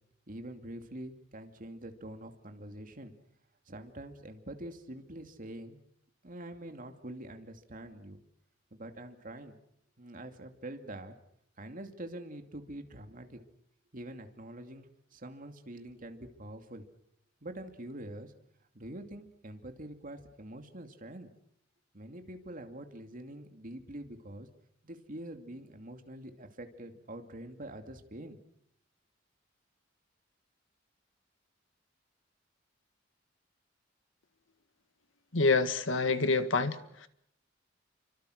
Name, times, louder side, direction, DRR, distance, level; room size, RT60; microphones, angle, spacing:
voice 1, 0.3-3.1 3.7-5.8 6.2-8.2 8.7-9.6 10.0-11.2 11.6-13.4 13.9-14.9 15.1-16.8 17.4-18.3 18.7-21.3 21.9-24.5 24.8-28.4, right 1 dB, 45° right, 6 dB, 2.5 m, -45 dB
voice 2, 35.3-37.1, left 3 dB, 75° left, 11 dB, 1.8 m, -27 dB
28.5 x 24.5 x 6.5 m, 0.71 s
head